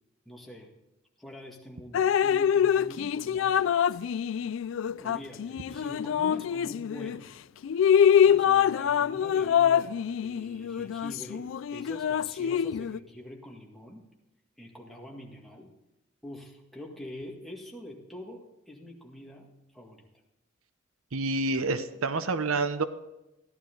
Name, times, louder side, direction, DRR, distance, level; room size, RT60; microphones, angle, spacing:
voice 1, 0.3-0.7 1.2-4.0 5.0-7.3 8.0-14.0 14.6-15.7 16.2-20.0, left 1 dB, ahead, -2 dB, 1.9 m, -45 dB
Drip, 1.9-7.2 7.6-13.0, left 8 dB, 65° left, 0.3 m, -25 dB
voice 2, 21.1-22.8, right 3 dB, 90° right, 11 dB, 0.8 m, -28 dB
15.0 x 11.0 x 3.8 m, 0.95 s
head